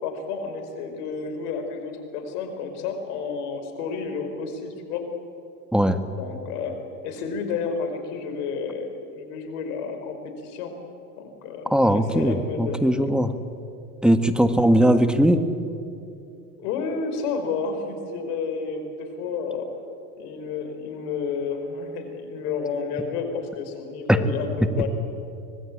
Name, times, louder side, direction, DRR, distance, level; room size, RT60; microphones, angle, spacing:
voice 1, 0.0-5.0 6.2-6.8 7.0-10.2 10.4-10.7 11.2-13.1 16.6-19.7 20.2-24.9, left 5 dB, 70° left, 6 dB, 5.1 m, -31 dB
voice 2, 5.7-6.0 11.7-13.3 14.0-15.4 24.1-24.2, equal, ahead, 9 dB, 1.5 m, -19 dB
25.0 x 19.5 x 8.7 m, 2.6 s
supercardioid pair, 110°, 48 cm